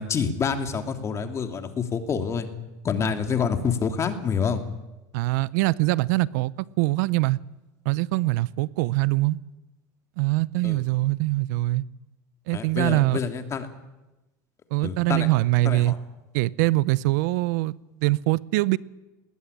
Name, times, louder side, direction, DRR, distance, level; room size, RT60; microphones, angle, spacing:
voice 1, 0.0-2.5 2.8-4.6 10.6-10.8 12.5-13.7 14.8-15.3 15.6-16.0, left 6 dB, 30° left, 7 dB, 2.9 m, -27 dB
voice 2, 5.1-6.5 6.8-7.4 7.8-9.4 10.2-11.8 12.5-13.2 14.7-15.9 16.3-17.7 18.0-18.8, right 19 dB, 75° right, 21 dB, 0.7 m, -23 dB
20.0 x 19.5 x 10.0 m, 1.0 s
supercardioid pair, 120°, 10 cm